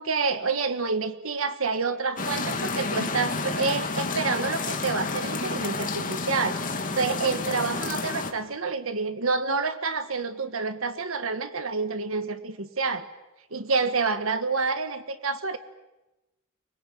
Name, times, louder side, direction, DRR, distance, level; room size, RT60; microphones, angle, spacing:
voice 1, 0.0-13.1 13.5-15.6, right 4 dB, 70° right, 10 dB, 1.6 m, -28 dB
sound 1, 2.2-8.3, left 3 dB, 40° left, 2.2 m, -30 dB
24.5 x 20.5 x 9.1 m, 1.0 s
head